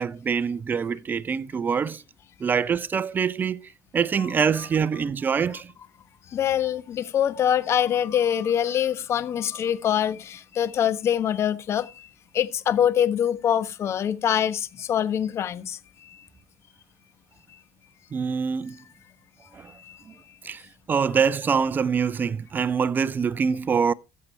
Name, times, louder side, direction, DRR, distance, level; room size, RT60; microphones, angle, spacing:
voice 1, 0.0-2.0 2.4-3.7 3.9-5.7 18.1-18.8 19.5-19.7 20.4-20.6 20.9-23.9, right 6 dB, 30° right, 0.6 m, -24 dB
voice 2, 6.3-11.9 12.3-15.8, left 9 dB, 45° left, 1.2 m, -24 dB
14.5 x 7.5 x 4.5 m
supercardioid pair, 85°, 6 cm